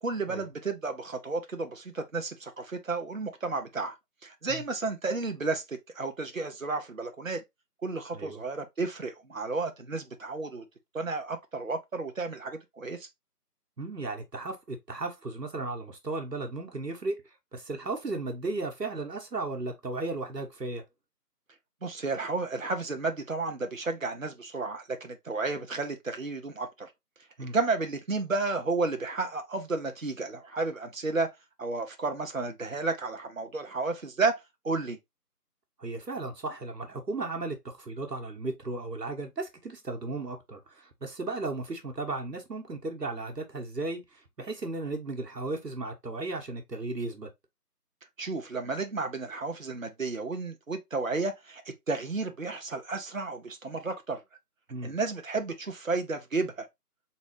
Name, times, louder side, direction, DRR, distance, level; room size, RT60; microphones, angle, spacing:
voice 1, 0.0-4.0 4.2-7.4 7.8-10.6 10.9-13.1 21.8-26.9 27.4-31.3 31.6-35.0 48.2-51.6 51.9-54.2 54.8-56.7, right 3 dB, 55° right, 0.9 m, -32 dB
voice 2, 13.8-17.2 17.5-20.8 27.4-27.6 35.8-47.3 54.7-54.9, right 2 dB, 80° right, 1.4 m, -35 dB
4.0 x 3.7 x 3.0 m
figure-of-eight pair, 175°, 48 cm